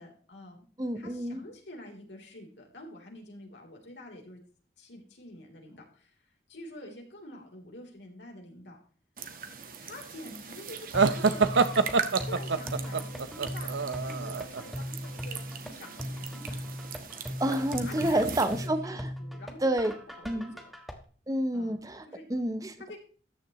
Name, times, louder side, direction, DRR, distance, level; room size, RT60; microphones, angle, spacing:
voice 1, 0.0-0.6 0.9-4.4 4.8-6.1 6.5-8.8 9.8-11.5 12.0-16.6 17.7-18.5 18.8-20.7 21.5-21.7 22.1-22.2 22.7-23.0, left 1 dB, 75° left, 1 dB, 3.5 m, -47 dB
voice 2, 0.8-1.4 17.4-19.1 19.6-19.9 20.2-20.6 21.3-22.8, right 1 dB, 20° right, 10 dB, 0.7 m, -29 dB
sound 1, 9.2-18.7, right 6 dB, 50° right, 1.3 m, -40 dB
sound 2, 10.9-20.9, equal, ahead, 1.3 m, -38 dB
sound 3, 10.9-14.6, right 4 dB, 85° right, 0.7 m, -26 dB
13.5 x 10.0 x 3.0 m, 0.43 s
head